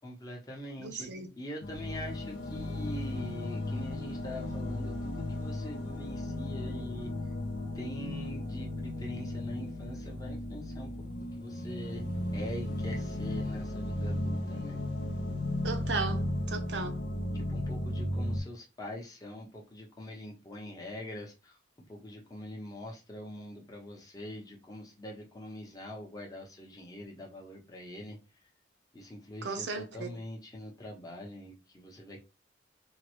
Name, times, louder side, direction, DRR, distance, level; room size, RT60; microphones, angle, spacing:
voice 1, 0.0-1.1 1.4-7.1 7.7-10.9 11.2-12.0 12.3-14.8 17.3-21.5 21.9-28.2 28.9-32.2, left 1 dB, 20° left, 0.8 m, -43 dB
voice 2, 0.8-1.3 15.6-17.0 29.4-30.1, right 4 dB, 90° right, 0.6 m, -36 dB
sound 1, 1.6-18.4, left 1 dB, 85° left, 0.6 m, -35 dB
3.7 x 2.1 x 2.9 m
head